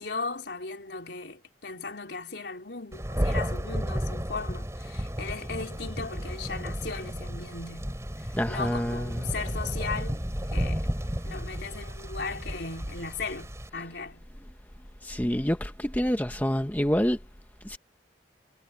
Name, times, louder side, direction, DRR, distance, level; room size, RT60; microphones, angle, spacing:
voice 1, 0.0-10.2 10.5-10.9 11.2-14.3, left 4 dB, 70° left, 4.0 m, -37 dB
Thunder, 2.9-13.7, equal, 15° right, 3.3 m, -33 dB
voice 2, 8.3-9.2 15.0-17.2 17.6-17.8, equal, 10° left, 0.9 m, -27 dB
head